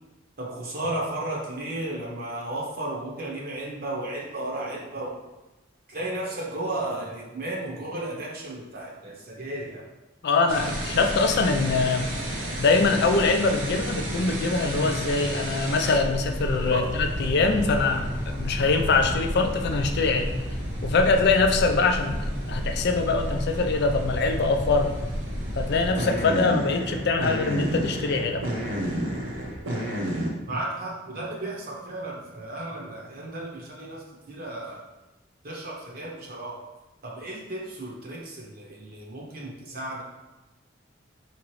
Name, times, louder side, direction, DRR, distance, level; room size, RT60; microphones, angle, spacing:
voice 1, 0.4-5.2 5.9-9.8 16.7-16.9 30.5-34.8 35.4-36.6 37.0-40.0, right 1 dB, 50° right, -3 dB, 0.8 m, -34 dB
voice 2, 10.2-12.1 12.6-20.4 20.8-25.0 25.5-28.4, left 3 dB, 55° left, 5 dB, 0.4 m, -23 dB
sound 1, 10.5-30.3, equal, 90° right, 0.8 m, -31 dB
Aircraft, 16.8-29.6, equal, ahead, 0.8 m, -38 dB
4.9 x 2.9 x 3.1 m, 1.0 s
head